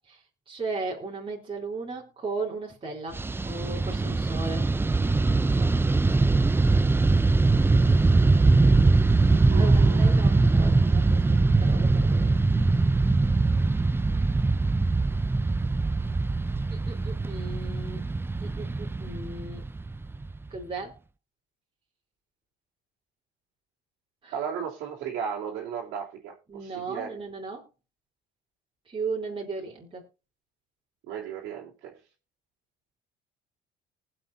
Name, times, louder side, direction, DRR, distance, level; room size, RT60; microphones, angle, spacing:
voice 1, 0.5-3.2 3.4-4.7 5.1-5.7 9.6-12.3 16.7-19.6 20.5-20.9 24.2-24.3 26.5-27.7 28.9-30.0, right 3 dB, 25° right, 3.7 m, -36 dB
Fixed-wing aircraft airplane, 3.1-20.6, right 3 dB, 10° right, 0.5 m, -22 dB
voice 2, 9.5-10.8 24.3-27.1 31.1-32.0, right 7 dB, 80° right, 3.3 m, -36 dB
20.0 x 7.6 x 2.7 m
cardioid pair, 100°, 19 cm